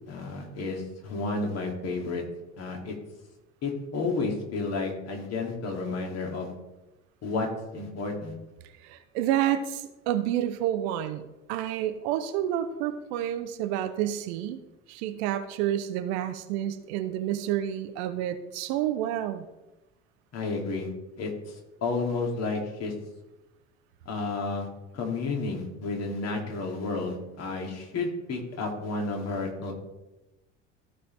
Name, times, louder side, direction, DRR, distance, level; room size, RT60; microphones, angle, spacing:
voice 1, 0.1-2.2 2.6-2.9 3.6-6.5 7.2-8.3 20.3-20.9 21.2-22.9 24.1-24.7 24.9-29.7, left 3 dB, 40° left, 2 dB, 2.2 m, -31 dB
voice 2, 8.8-14.6 14.9-19.5, right 11 dB, 55° right, 10 dB, 0.8 m, -29 dB
14.0 x 5.5 x 3.2 m, 1.0 s
figure-of-eight pair, 65°, 37 cm